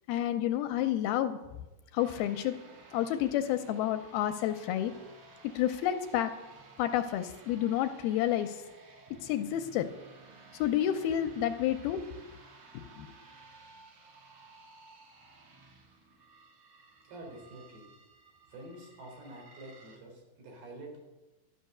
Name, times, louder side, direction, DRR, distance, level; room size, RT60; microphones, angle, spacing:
voice 1, 0.1-1.4 1.9-2.5 2.9-4.9 5.6-6.3 6.8-8.6 9.2-9.9 10.5-12.0 12.7-13.1, left 11 dB, 80° left, 8 dB, 2.4 m, -30 dB
sound 1, 2.0-20.0, right 3 dB, 50° right, 2.3 m, -55 dB
voice 2, 17.0-17.8 18.5-21.0, right 1 dB, 70° right, 0 dB, 5.3 m, -47 dB
12.0 x 12.0 x 6.7 m, 1.1 s
omnidirectional pair, 4.7 m